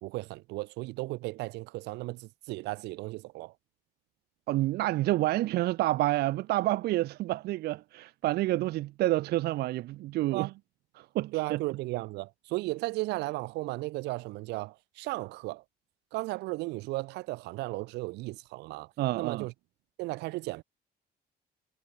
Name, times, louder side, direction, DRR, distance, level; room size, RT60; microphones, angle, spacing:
voice 1, 0.0-3.5 10.3-10.5 11.3-15.6 16.1-19.5 20.0-20.6, right 21 dB, 90° right, 1.1 m, -35 dB
voice 2, 4.5-10.5 11.0-11.6 19.0-19.5, right 16 dB, 70° right, 0.6 m, -28 dB
cardioid pair, 110°, 17 cm